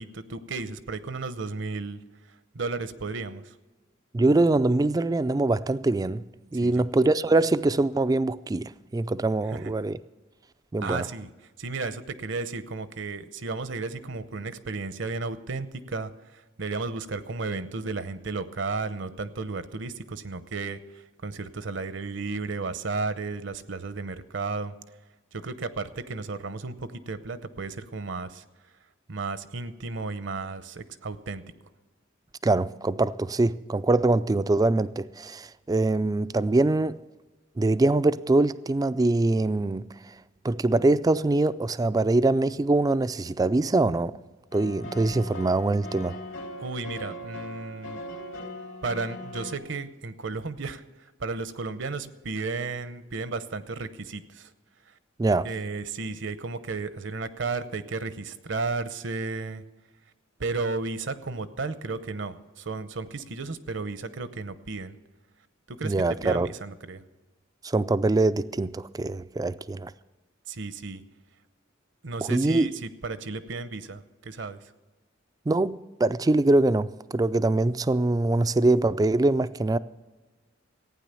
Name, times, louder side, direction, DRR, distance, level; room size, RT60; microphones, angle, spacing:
voice 1, 0.0-2.0 2.3-3.6 6.6-6.8 9.5-9.7 10.8-11.3 11.6-24.7 25.3-28.4 29.1-31.4 46.6-48.0 48.8-54.5 54.9-55.0 55.4-59.6 60.4-65.0 65.7-67.0 70.5-71.0 72.0-74.7, right 3 dB, 65° right, 0.8 m, -34 dB
voice 2, 4.1-6.2 6.5-10.0 10.7-11.1 32.4-37.0 37.6-40.2 40.4-44.2 44.5-46.2 55.2-55.5 65.8-66.5 67.6-69.9 72.2-72.7 75.5-79.8, right 2 dB, 20° right, 0.3 m, -23 dB
sound 1, 44.5-49.5, left 1 dB, 70° left, 2.6 m, -39 dB
15.0 x 9.4 x 6.9 m
head